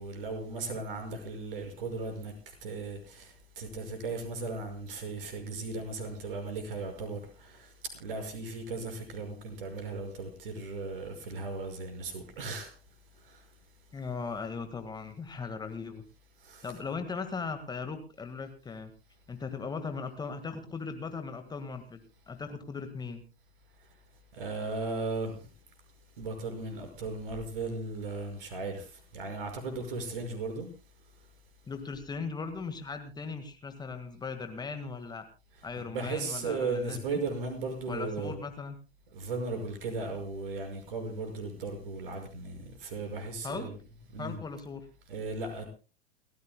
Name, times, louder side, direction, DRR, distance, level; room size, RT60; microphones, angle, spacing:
voice 1, 0.0-12.7 13.2-13.4 16.4-16.7 24.3-25.5 26.2-30.7 35.9-38.4 39.1-43.7 44.1-44.4 45.1-45.6, right 3 dB, 55° right, 5.6 m, -36 dB
voice 2, 13.9-16.0 16.6-18.9 19.3-23.2 31.7-35.2 35.6-37.2 37.9-38.7 43.4-43.7 44.2-44.8, left 5 dB, 15° left, 1.7 m, -38 dB
29.5 x 14.5 x 2.2 m
figure-of-eight pair, 95°, 31 cm